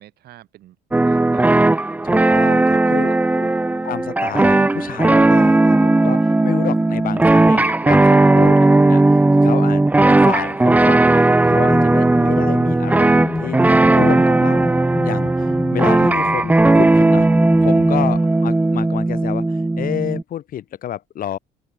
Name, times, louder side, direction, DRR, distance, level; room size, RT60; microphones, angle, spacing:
voice 1, 0.0-1.9 2.5-3.9 18.2-18.4, right 13 dB, 70° right, 5.3 m, -47 dB
sound 1, 0.9-20.2, right 2 dB, 10° right, 0.6 m, -16 dB
voice 2, 2.0-3.5 3.8-9.8 10.1-14.7 15.0-17.3 17.6-21.4, left 11 dB, 55° left, 2.2 m, -29 dB
sound 2, 11.4-18.2, left 3 dB, 15° left, 1.3 m, -28 dB
open air
cardioid pair, 110°, 17 cm